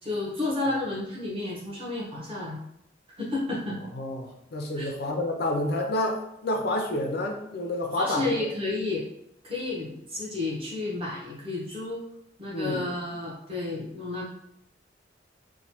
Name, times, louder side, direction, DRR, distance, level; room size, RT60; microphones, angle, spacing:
voice 1, 0.0-2.6 3.2-3.8 4.8-4.9 7.9-9.0 9.4-12.0 12.4-14.3, left 2 dB, 30° right, -5 dB, 0.8 m, -31 dB
voice 2, 3.9-8.3 12.5-12.9, left 1 dB, 55° left, 2 dB, 0.4 m, -29 dB
3.0 x 2.1 x 2.9 m, 0.77 s
head